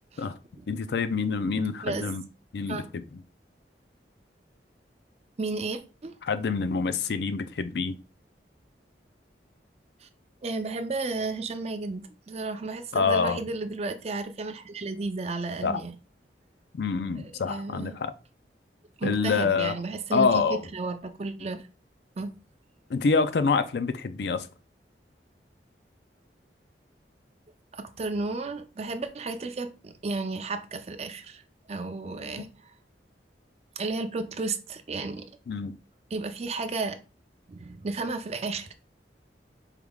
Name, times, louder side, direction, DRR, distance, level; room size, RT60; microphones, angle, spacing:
voice 1, 0.7-2.2 2.5-3.0 6.2-8.0 12.9-13.4 15.6-15.8 16.7-18.1 19.0-19.7 20.1-20.6 22.9-24.5 35.5-35.7, left 4 dB, 65° left, 0.4 m, -26 dB
voice 2, 5.4-6.2 10.0-10.1 10.4-15.9 17.1-18.0 19.0-21.7 22.2-22.3 27.7-31.4 31.7-32.7 33.8-35.2 36.1-37.0 37.5-38.7, right 3 dB, 35° right, 0.4 m, -33 dB
4.7 x 3.5 x 2.3 m
head